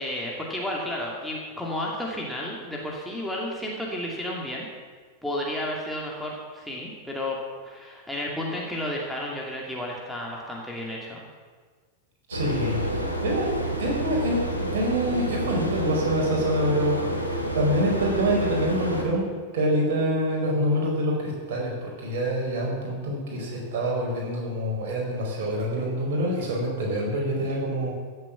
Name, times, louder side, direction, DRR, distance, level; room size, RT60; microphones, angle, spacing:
voice 1, 0.0-4.7 5.2-7.4 7.6-11.2, left 1 dB, ahead, -3 dB, 2.5 m, -32 dB
voice 2, 12.3-13.5 13.8-17.2 17.5-19.2 19.5-27.9, equal, 55° right, -1 dB, 4.8 m, -26 dB
sound 1, 12.3-19.0, right 1 dB, 85° right, 2.5 m, -29 dB
16.0 x 7.7 x 7.3 m, 1.5 s
figure-of-eight pair, 90°, 0 cm